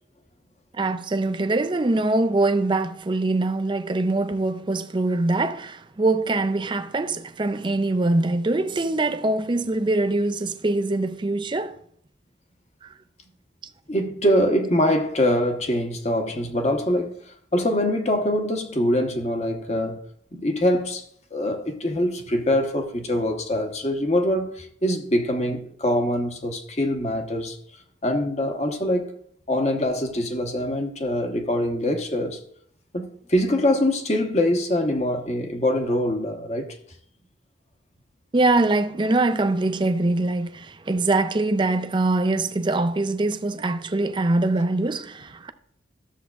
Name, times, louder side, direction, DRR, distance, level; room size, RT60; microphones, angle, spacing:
voice 1, 0.7-11.8 12.8-12.9 38.3-45.5, right 2 dB, 25° right, 0.4 m, -23 dB
voice 2, 13.9-20.0 20.3-21.0 21.3-27.6 28.0-29.1 29.5-32.4 32.9-36.8, left 1 dB, 35° left, 1.0 m, -24 dB
13.0 x 7.2 x 2.4 m
head